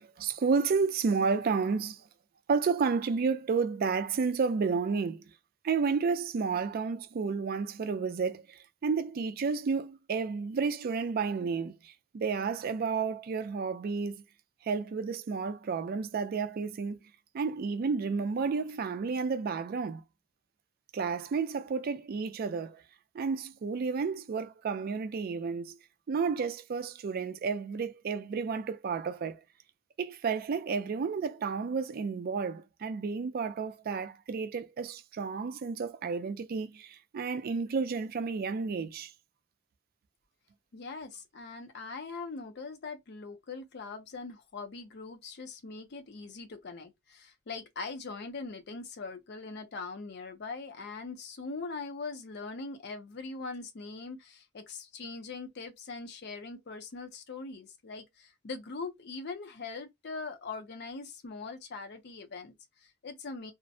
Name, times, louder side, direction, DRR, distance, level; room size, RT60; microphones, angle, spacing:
voice 1, 0.0-2.0 2.5-5.2 5.6-14.2 14.6-17.0 17.3-20.0 20.9-22.8 23.1-25.8 26.1-29.4 30.0-39.1, right 5 dB, 45° right, 0.3 m, -31 dB
voice 2, 40.7-63.5, left 4 dB, 55° left, 0.5 m, -41 dB
2.4 x 2.1 x 2.6 m
head